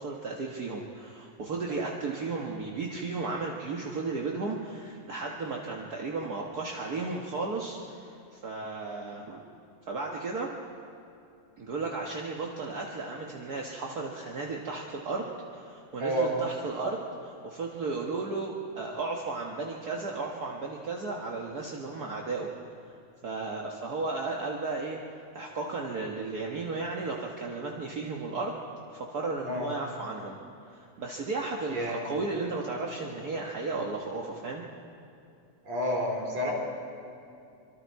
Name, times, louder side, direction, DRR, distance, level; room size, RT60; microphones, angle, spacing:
voice 1, 0.0-9.4 9.8-10.5 11.6-15.2 15.5-22.5 23.2-25.0 25.3-28.6 28.9-30.4 30.7-34.6, right 3 dB, 45° right, -1 dB, 1.3 m, -34 dB
voice 2, 16.0-16.3 29.4-29.7 31.7-32.0 35.6-36.5, equal, 60° right, -1 dB, 5.3 m, -29 dB
26.0 x 24.5 x 4.7 m, 2.6 s
omnidirectional pair, 3.4 m